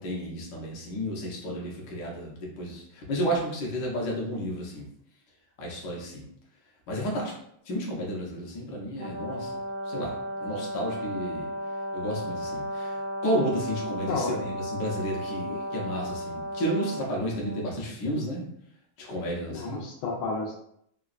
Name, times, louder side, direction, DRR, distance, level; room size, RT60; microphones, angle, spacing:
voice 1, 0.0-4.9 5.6-6.2 6.9-7.3 7.7-9.6 9.9-11.5 11.9-18.5 19.0-19.8, equal, 60° left, -2 dB, 1.2 m, -32 dB
Brass instrument, 9.0-17.7, equal, 70° right, 0.8 m, -34 dB
voice 2, 13.9-14.4 15.4-15.6 19.5-20.5, left 3 dB, 80° left, -2 dB, 1.5 m, -33 dB
3.8 x 2.3 x 2.4 m, 0.72 s
omnidirectional pair, 2.3 m